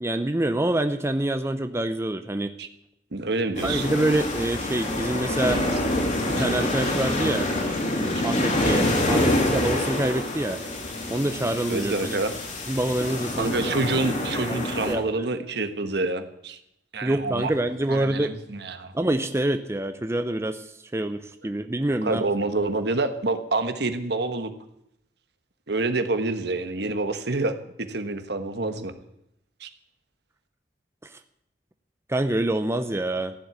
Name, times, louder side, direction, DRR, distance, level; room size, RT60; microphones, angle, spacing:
voice 1, 0.0-2.5 3.6-5.6 6.4-7.5 8.2-10.6 11.1-12.2 12.7-13.8 14.5-14.6 14.9-15.3 17.0-18.3 18.9-20.6 20.9-22.2 32.1-33.3, right 1 dB, 15° right, 8 dB, 0.6 m, -26 dB
voice 2, 3.1-3.8 6.4-6.5 11.7-12.3 13.4-16.6 16.9-17.5 17.9-18.9 22.0-24.5 25.7-28.9 29.6-29.7, right 2 dB, 65° right, 8 dB, 1.4 m, -27 dB
sound 1, 3.6-14.9, left 1 dB, 45° left, 2.8 m, -26 dB
15.0 x 7.7 x 9.5 m, 0.80 s
head